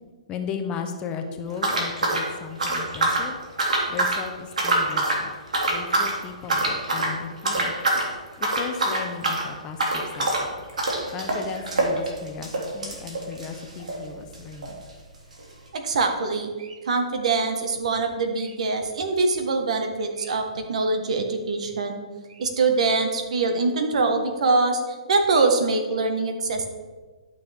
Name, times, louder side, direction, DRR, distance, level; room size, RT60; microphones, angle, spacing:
voice 1, 0.3-3.4 3.9-5.3 5.7-7.7 8.4-10.6 11.1-14.9, left 6 dB, 25° left, 5 dB, 0.8 m, -36 dB
sound 1, 1.6-3.3 3.6-4.2 4.5-5.2 5.5-6.1 6.5-7.1 7.4-8.1 8.4-14.0 14.3-14.4 14.6-14.7 15.4-15.5, right 2 dB, 85° right, 2.4 m, -25 dB
voice 2, 15.7-22.0 22.3-26.7, right 3 dB, 65° right, 5 dB, 1.5 m, -24 dB
11.5 x 6.5 x 3.6 m, 1.4 s
hypercardioid pair, 145°, 4 cm